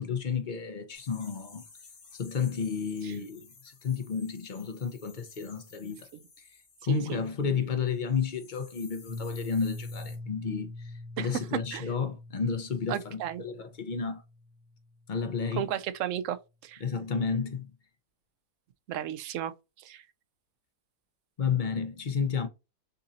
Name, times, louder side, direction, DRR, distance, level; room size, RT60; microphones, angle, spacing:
voice 1, 0.0-1.6 2.1-6.1 6.4-6.5 6.8-14.2 15.1-15.7 16.8-17.7 21.4-22.5, left 6 dB, 40° left, 0.7 m, -32 dB
sound 1, 0.9-7.6 7.9-10.2, left 5 dB, 70° left, 2.2 m, -55 dB
voice 2, 6.9-7.2 11.2-11.3 11.7-11.9 12.9-13.4 15.5-16.4 16.6-16.8 18.9-20.0, right 11 dB, 70° right, 0.8 m, -34 dB
Piano, 9.1-14.7, left 2 dB, 90° left, 1.6 m, -42 dB
6.5 x 2.6 x 2.8 m
omnidirectional pair, 1.7 m